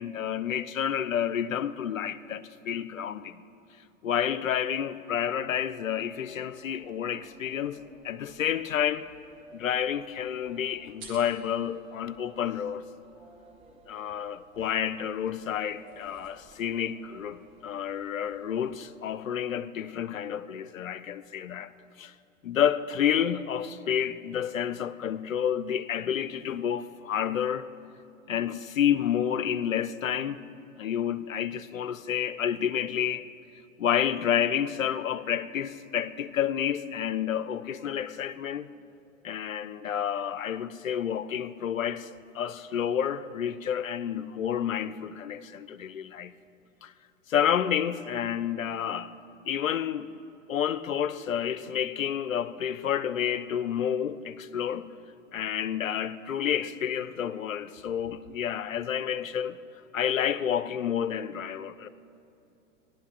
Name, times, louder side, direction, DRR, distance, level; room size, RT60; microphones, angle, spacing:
voice 1, 0.0-3.4 4.0-7.8 8.0-9.1 9.5-12.8 13.9-21.7 22.0-22.1 22.4-27.7 28.3-30.4 30.8-33.3 33.8-38.7 39.2-42.1 42.3-46.3 46.8-46.9 47.3-49.1 49.5-50.1 50.5-54.9 55.3-59.6 59.9-61.9, left 9 dB, 80° left, 0.6 m, -29 dB
sound 1, 6.0-19.5, right 1 dB, 15° right, 1.3 m, -57 dB
sound 2, 8.2-18.8, right 4 dB, 45° right, 1.9 m, -58 dB
17.5 x 11.5 x 2.6 m
figure-of-eight pair, 95°, 39 cm